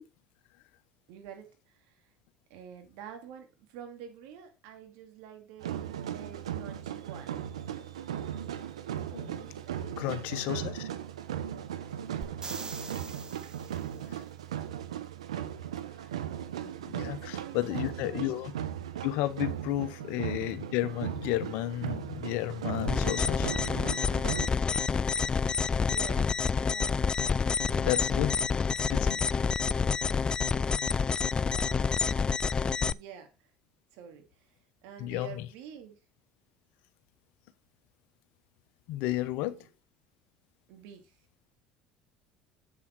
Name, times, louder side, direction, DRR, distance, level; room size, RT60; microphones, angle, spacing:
voice 1, 1.1-2.1 2.5-7.4 9.6-11.0 11.8-12.1 12.4-12.7 13.7-13.9 17.0-18.3 19.7-19.9 25.5-27.1 27.6-28.2 29.5-30.8 31.4-33.5 33.9-36.0 39.1-39.7 40.7-41.2, right 8 dB, 70° right, 2.4 m, -50 dB
sound 1, 5.6-24.5, right 10 dB, 90° right, 0.8 m, -37 dB
voice 2, 9.1-10.9 14.1-14.2 16.6-18.5 19.0-23.5 27.8-28.4 28.9-29.2 35.0-35.5 38.9-39.6, left 15 dB, 70° left, 0.9 m, -33 dB
sound 2, 12.2-14.1 17.9-18.0, right 4 dB, 25° right, 1.4 m, -42 dB
sound 3, 22.9-32.9, left 5 dB, 25° left, 0.4 m, -28 dB
7.7 x 7.1 x 4.6 m
hypercardioid pair, 70°, 3 cm